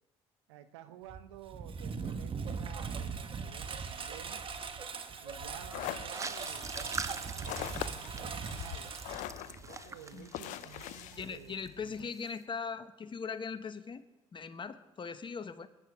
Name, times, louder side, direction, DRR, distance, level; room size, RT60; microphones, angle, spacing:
voice 1, 0.5-4.4 5.2-9.0 9.4-12.1, right 11 dB, 80° right, 10 dB, 0.8 m, -52 dB
Engine, 1.1-9.8, right 5 dB, 40° right, 1.4 m, -40 dB
sound 1, 5.3-12.0, left 13 dB, 65° left, 0.5 m, -43 dB
sound 2, 6.0-11.7 11.9-12.3, right 4 dB, 20° right, 0.8 m, -44 dB
voice 2, 10.1-10.4 11.2-14.0 14.3-15.7, left 5 dB, 35° left, 12 dB, 1.1 m, -40 dB
21.5 x 10.5 x 3.6 m, 1.0 s
hypercardioid pair, 55°, 14 cm